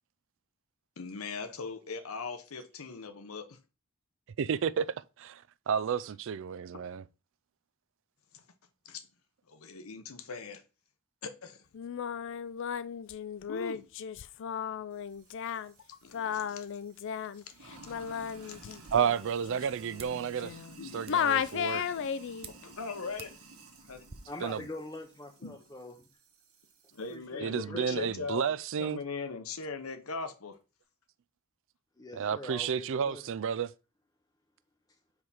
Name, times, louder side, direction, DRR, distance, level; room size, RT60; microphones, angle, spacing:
voice 1, 1.0-3.6 8.3-8.4 8.8-9.0 9.5-10.6 11.2-11.6 13.5-13.8 16.0-16.7 17.3-17.4 17.8-17.9 18.4-18.8 20.8-21.1 22.0-22.1 22.5-24.0 25.4-25.6 26.9-28.4 28.8-30.6, left 4 dB, 75° left, 0.9 m, -40 dB
voice 2, 4.4-4.9 5.2-7.1 18.9-20.6 20.9-21.8 24.4-24.7 27.4-29.0 32.1-33.7, right 7 dB, 60° right, 0.4 m, -31 dB
Singing, 11.7-20.8 21.1-22.5, left 8 dB, 60° left, 0.4 m, -35 dB
Sink (filling or washing), 14.9-27.3, right 3 dB, 80° right, 1.5 m, -54 dB
sound 1, 18.7-24.2, right 5 dB, 30° right, 0.7 m, -54 dB
voice 3, 24.3-26.1 27.1-28.1 32.0-33.3, left 1 dB, 15° left, 0.6 m, -44 dB
4.8 x 4.8 x 5.6 m
head